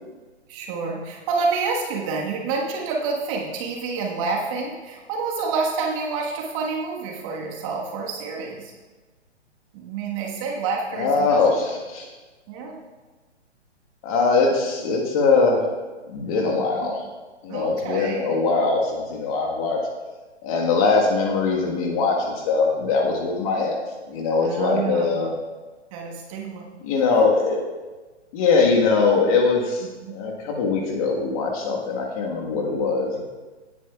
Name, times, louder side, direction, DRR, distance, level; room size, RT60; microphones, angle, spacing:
voice 1, 0.5-8.7 9.7-11.4 12.5-12.8 17.5-18.4 24.4-25.3 25.9-26.7 30.0-30.1 32.5-32.9, right 4 dB, 30° right, -1 dB, 1.4 m, -28 dB
voice 2, 10.9-12.1 14.0-15.6 16.1-17.0 17.4-19.8 20.4-23.8 24.1-25.3 26.8-27.6 28.3-33.2, left 4 dB, 30° left, 0 dB, 1.5 m, -21 dB
17.0 x 9.4 x 2.4 m, 1.3 s
figure-of-eight pair, 135°, 35 cm